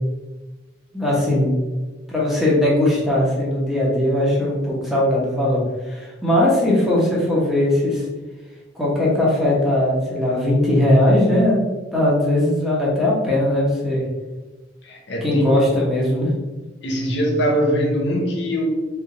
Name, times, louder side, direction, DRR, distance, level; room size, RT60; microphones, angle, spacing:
voice 1, 0.9-1.5 2.1-8.0 8.7-11.6 11.9-14.0 15.2-16.3, left 1 dB, ahead, -5 dB, 1.1 m, -19 dB
voice 2, 14.8-15.5 16.8-18.7, equal, 65° left, 0 dB, 0.8 m, -22 dB
3.4 x 3.4 x 3.9 m, 1.2 s
head